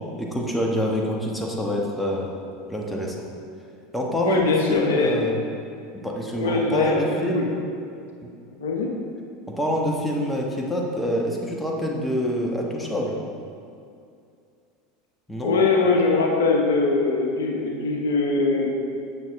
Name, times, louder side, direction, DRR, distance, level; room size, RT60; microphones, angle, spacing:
voice 1, 0.0-2.3 2.7-3.2 3.9-5.4 5.9-7.5 8.2-8.3 9.5-13.2 15.3-15.5, equal, 5° left, -1 dB, 1.3 m, -26 dB
voice 2, 4.2-5.2 6.4-7.5 8.6-8.9 15.4-18.7, left 3 dB, 80° left, 1 dB, 1.0 m, -22 dB
8.8 x 6.3 x 3.6 m, 2.5 s
hypercardioid pair, 80°, 0 cm